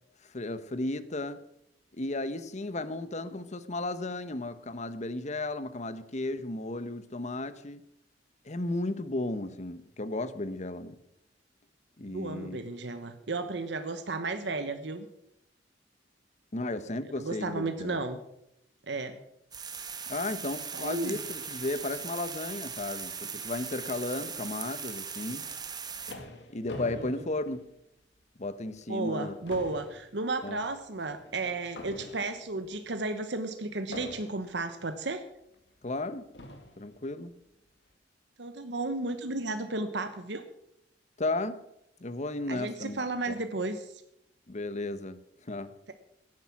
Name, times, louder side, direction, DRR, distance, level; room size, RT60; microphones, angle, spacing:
voice 1, 0.3-1.4 1.9-7.8 8.4-11.0 12.0-12.6 16.5-18.0 20.1-25.5 26.5-27.6 28.4-29.4 30.4-30.6 35.8-36.3 36.8-37.3 41.2-41.6 42.0-43.3 44.5-45.7, left 2 dB, 40° left, 13 dB, 1.0 m, -34 dB
voice 2, 12.1-15.1 17.0-18.2 18.9-19.2 20.7-21.2 27.0-27.1 28.9-35.2 38.4-40.4 42.5-44.0, right 3 dB, 70° right, 8 dB, 1.1 m, -33 dB
sound 1, 19.5-26.1, right 6 dB, 25° right, 1.4 m, -39 dB
sound 2, 25.7-28.2 28.6-28.8 29.1-32.7 33.9-34.7 35.5-35.6 36.3-36.9, left 2 dB, 70° left, 2.3 m, -45 dB
16.5 x 11.0 x 6.0 m, 0.81 s
head